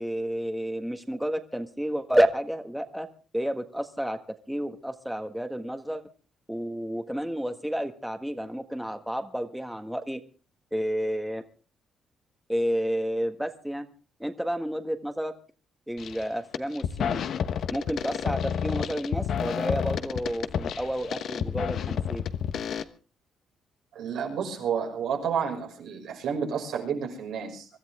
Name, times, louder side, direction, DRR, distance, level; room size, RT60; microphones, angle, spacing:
voice 1, 0.0-3.1 3.3-4.2 4.5-6.0 6.5-10.2 10.7-11.4 12.5-13.9 14.2-15.3 15.9-17.3 17.7-22.2, equal, 5° right, 7 dB, 1.6 m, -30 dB
sound 1, 16.0-16.2 16.5-22.8, left 8 dB, 65° left, 1.2 m, -30 dB
voice 2, 23.9-27.7, right 7 dB, 80° right, 2 dB, 6.0 m, -30 dB
24.5 x 14.0 x 3.6 m, 0.36 s
cardioid pair, 90°, 0 cm